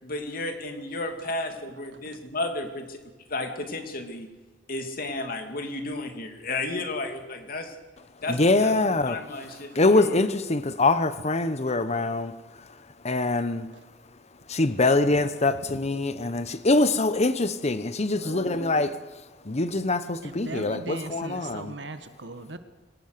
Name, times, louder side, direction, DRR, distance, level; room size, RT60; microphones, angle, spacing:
voice 1, 0.0-3.0 3.3-4.3 4.7-7.8 8.2-10.3, left 2 dB, 55° left, 2.8 m, -33 dB
voice 2, 8.3-9.2 9.7-12.4 13.0-13.7 14.5-18.9 19.4-21.7, left 2 dB, 35° left, 1.0 m, -24 dB
voice 3, 9.5-9.8 13.7-13.8 15.1-15.2 15.7-15.8 18.1-18.9 20.2-22.6, right 2 dB, 70° right, 1.5 m, -39 dB
23.0 x 18.5 x 6.9 m
head